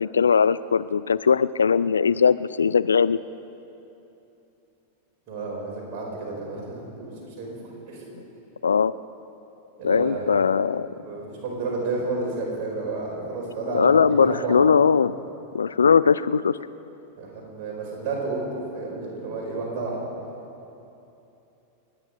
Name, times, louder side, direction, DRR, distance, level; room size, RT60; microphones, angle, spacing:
voice 1, 0.0-3.2 8.6-8.9 9.8-10.9 13.7-15.2 15.5-16.6, left 6 dB, 70° left, 16 dB, 0.3 m, -20 dB
voice 2, 5.3-7.5 7.9-8.0 9.8-10.6 10.9-14.6 17.2-20.0, right 3 dB, 40° right, -3 dB, 4.9 m, -31 dB
29.0 x 10.0 x 5.0 m, 2.9 s
figure-of-eight pair, 90°, 0 cm